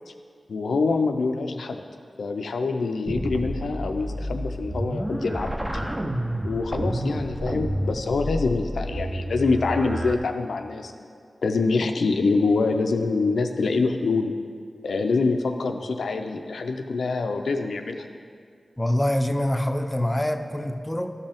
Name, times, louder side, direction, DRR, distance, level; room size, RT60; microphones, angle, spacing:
voice 1, 0.5-1.8 2.2-5.8 6.3-11.1 11.4-14.3 14.8-18.0, left 3 dB, 90° left, 6 dB, 0.5 m, -25 dB
sound 1, 3.1-10.2, equal, 20° right, 0.7 m, -30 dB
voice 2, 18.8-21.1, left 1 dB, 20° left, 6 dB, 0.6 m, -25 dB
13.0 x 5.4 x 3.5 m, 2.2 s
cardioid pair, 50°, 0 cm